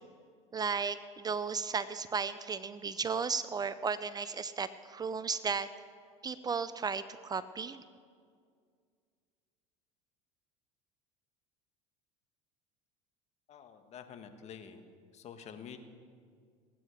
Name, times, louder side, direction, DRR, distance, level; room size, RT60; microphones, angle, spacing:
voice 1, 0.5-5.7 6.2-7.8, right 5 dB, 25° right, 14 dB, 0.6 m, -34 dB
voice 2, 13.5-14.8 15.1-15.8, left 7 dB, 45° left, 7 dB, 1.5 m, -48 dB
19.5 x 9.4 x 6.5 m, 2.1 s
hypercardioid pair, 85°, 16 cm